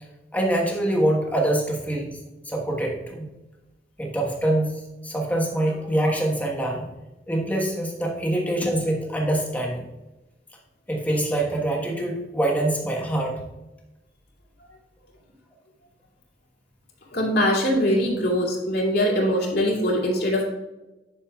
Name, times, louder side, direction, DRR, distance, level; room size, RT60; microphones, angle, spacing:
voice 1, 0.3-2.2 2.4-3.3 4.0-6.9 7.3-9.8 10.9-13.4, right 1 dB, 10° left, -1 dB, 1.3 m, -25 dB
voice 2, 17.1-20.4, equal, 60° left, -2 dB, 2.5 m, -22 dB
10.5 x 6.7 x 2.4 m, 1.0 s
head